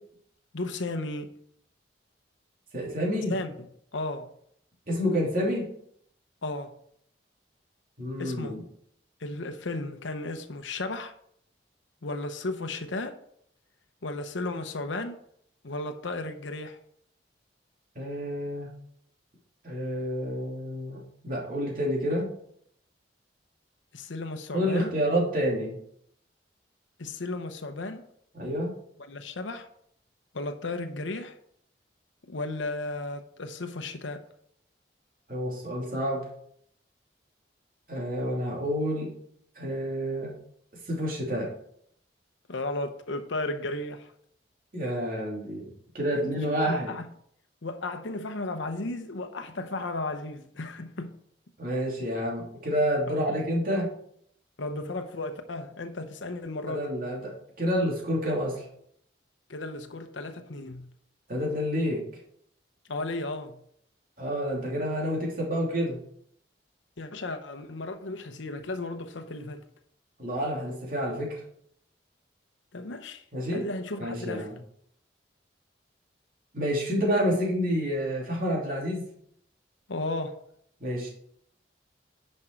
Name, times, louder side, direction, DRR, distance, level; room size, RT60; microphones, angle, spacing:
voice 1, 0.5-1.3 3.3-3.5 3.9-4.3 6.4-6.7 8.2-8.6 9.2-11.1 12.0-13.2 14.0-15.2 15.6-16.8 23.9-24.9 27.0-28.0 29.1-29.7 30.3-31.4 32.3-34.2 42.5-44.1 46.1-47.0 47.6-51.1 53.1-53.2 54.6-56.9 59.5-60.9 62.9-63.6 67.0-69.6 72.7-73.2 73.5-74.5 79.9-80.4, left 2 dB, 85° left, 0.9 m, -34 dB
voice 2, 2.7-3.3 4.9-5.7 8.0-8.6 17.9-18.7 19.6-22.3 24.5-25.8 28.3-28.7 35.3-36.3 37.9-39.1 39.6-40.3 40.9-41.5 44.7-46.9 51.6-53.9 56.7-58.7 61.3-62.0 64.2-66.0 70.2-71.4 73.3-73.7 74.0-74.6 76.5-79.1 80.8-81.1, equal, 45° right, 2.8 m, -29 dB
9.9 x 5.4 x 4.5 m
head